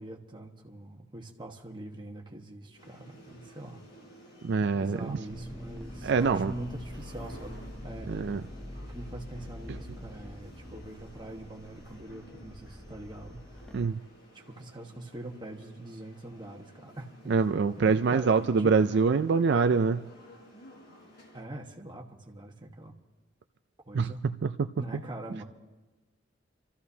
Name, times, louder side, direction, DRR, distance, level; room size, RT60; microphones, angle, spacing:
voice 1, 0.0-3.8 4.7-8.3 8.8-13.6 14.3-19.0 21.3-22.9 23.8-24.2 24.8-25.4, right 1 dB, 25° right, 1 dB, 1.4 m, -43 dB
sound 1, 2.8-21.4, equal, 60° left, 4.4 m, -53 dB
voice 2, 4.4-5.2 6.0-6.5 8.1-8.4 13.7-14.0 17.3-20.0 23.9-24.1 24.6-24.7, right 5 dB, 65° right, 9 dB, 0.4 m, -24 dB
sound 2, 5.3-13.9, equal, 5° left, 0.5 m, -44 dB
29.0 x 14.0 x 2.8 m, 1.2 s
head